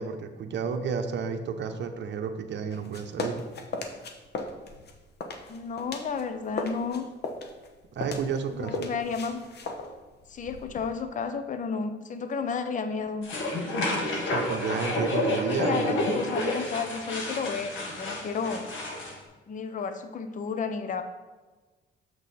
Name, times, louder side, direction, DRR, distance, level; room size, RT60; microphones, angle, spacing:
voice 1, 0.0-3.4 8.0-8.8 14.2-16.0, right 6 dB, 65° right, 5 dB, 0.8 m, -31 dB
sound 1, 2.7-6.2 6.5-10.9, left 2 dB, 55° left, 1.0 m, -37 dB
voice 2, 5.5-7.1 8.5-9.5 10.3-13.3 15.5-18.7 19.5-21.0, left 5 dB, 40° left, 9 dB, 0.6 m, -32 dB
sound 2, 13.2-19.1, left 2 dB, 75° left, 1.7 m, -30 dB
6.9 x 6.3 x 4.2 m, 1.3 s
cardioid pair, 90°, 20 cm